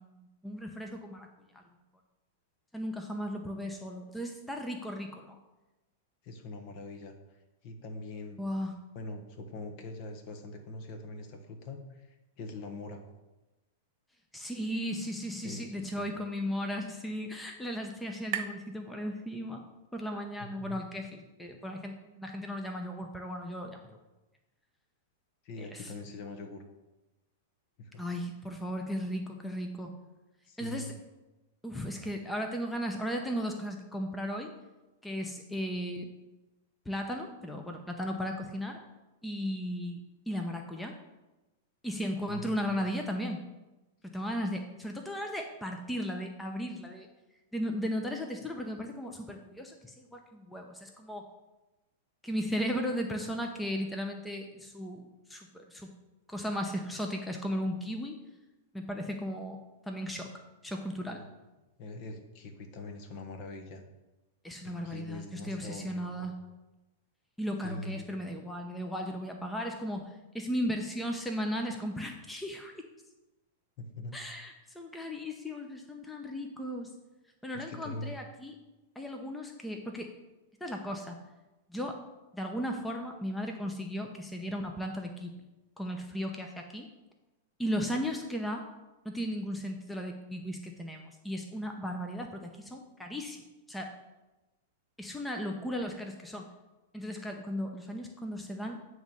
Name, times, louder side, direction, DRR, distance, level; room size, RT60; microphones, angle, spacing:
voice 1, 0.0-1.6 2.7-5.4 8.4-8.8 14.3-19.6 19.9-24.0 25.6-25.9 28.0-30.0 30.6-30.9 31.6-34.5 35.0-36.1 36.9-38.8 39.2-40.9 41.8-43.4 44.0-47.1 47.5-51.3 52.2-55.0 55.3-55.9 56.3-58.2 58.7-59.6 59.9-60.3 60.6-61.2 64.4-66.4 67.4-72.8 74.1-76.9 77.4-78.6 79.0-80.1 80.6-81.2 81.7-82.0 82.3-85.4 85.8-86.9 87.6-88.7 89.0-93.9 95.0-96.5 96.9-98.8, equal, 5° left, 3 dB, 0.7 m, -36 dB
voice 2, 6.2-8.4 8.9-13.0 15.4-16.1 20.6-20.8 25.4-26.6 27.8-28.0 30.5-31.0 42.3-42.7 61.1-61.3 61.8-63.8 64.6-66.3 67.6-68.1 73.8-74.2 77.5-78.1, left 2 dB, 50° left, 5 dB, 1.2 m, -43 dB
sound 1, 16.0-19.7, right 10 dB, 50° right, 0.6 m, -44 dB
9.3 x 3.1 x 5.3 m, 1.0 s
hypercardioid pair, 120°, 0 cm